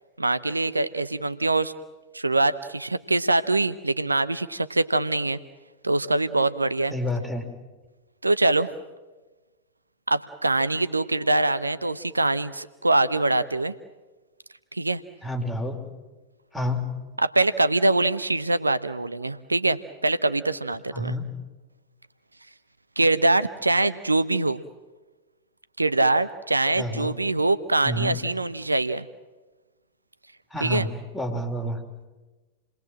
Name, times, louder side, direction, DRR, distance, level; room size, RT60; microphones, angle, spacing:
voice 1, 0.2-1.7 2.1-5.4 5.8-6.9 8.2-8.7 10.1-13.7 14.7-15.0 17.2-21.1 23.0-24.6 25.8-29.1 30.6-30.9, right 2 dB, 80° right, 13 dB, 0.8 m, -23 dB
voice 2, 6.9-7.5 15.2-15.9 16.5-17.1 20.9-21.4 26.7-27.2 27.8-28.2 30.5-31.8, left 1 dB, ahead, 2 dB, 4.2 m, -29 dB
29.0 x 20.0 x 7.6 m, 1.2 s
figure-of-eight pair, 90°, 0 cm